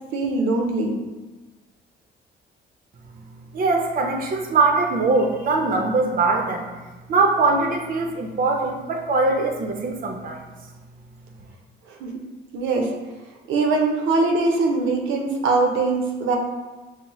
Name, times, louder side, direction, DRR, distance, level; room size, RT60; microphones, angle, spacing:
voice 1, 0.1-1.0 11.9-12.2 12.5-12.9 13.5-16.4, right 3 dB, 85° right, 1 dB, 0.6 m, -22 dB
voice 2, 3.5-6.7 7.1-10.4, right 3 dB, 45° right, 2 dB, 0.6 m, -21 dB
5.4 x 2.0 x 3.0 m, 1.2 s
cardioid pair, 90°, 20 cm